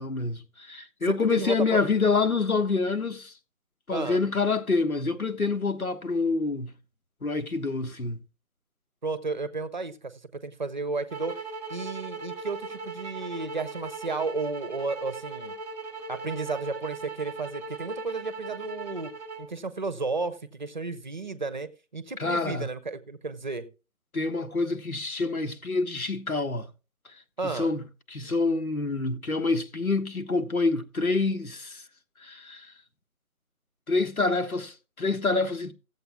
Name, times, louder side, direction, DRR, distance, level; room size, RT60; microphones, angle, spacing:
voice 1, 0.0-3.3 3.9-6.7 7.2-8.2 22.2-22.7 24.1-26.7 27.4-27.8 28.1-31.8 32.2-32.7 33.9-35.7, left 3 dB, 80° left, 1.3 m, -27 dB
voice 2, 1.1-1.8 3.9-4.2 9.0-11.4 11.7-15.5 16.1-19.1 19.4-23.7 27.4-27.7, right 3 dB, 35° right, 0.8 m, -33 dB
sound 1, 11.1-19.5, right 3 dB, 10° right, 1.1 m, -38 dB
15.0 x 7.9 x 3.5 m
figure-of-eight pair, 150°, 42 cm